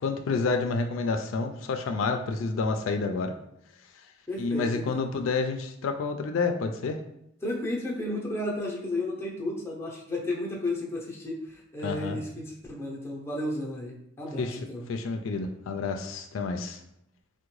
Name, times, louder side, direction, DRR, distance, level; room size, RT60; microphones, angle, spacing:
voice 1, 0.0-3.3 4.4-7.0 11.8-12.2 14.4-14.6 14.9-16.8, left 4 dB, 85° left, 5 dB, 0.3 m, -29 dB
voice 2, 4.3-5.1 7.4-14.9, left 1 dB, 15° left, -3 dB, 0.6 m, -33 dB
3.5 x 2.1 x 3.0 m, 0.79 s
head